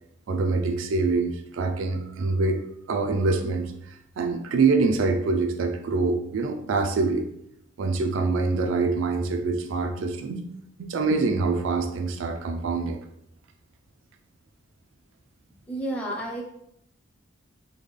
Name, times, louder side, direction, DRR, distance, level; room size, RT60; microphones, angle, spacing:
voice 1, 0.3-2.6 2.9-7.2 7.8-10.4 10.8-13.0, right 3 dB, 70° right, 4 dB, 0.4 m, -25 dB
voice 2, 15.7-16.4, right 1 dB, 5° left, -2 dB, 0.7 m, -30 dB
3.7 x 2.2 x 3.2 m, 0.77 s
head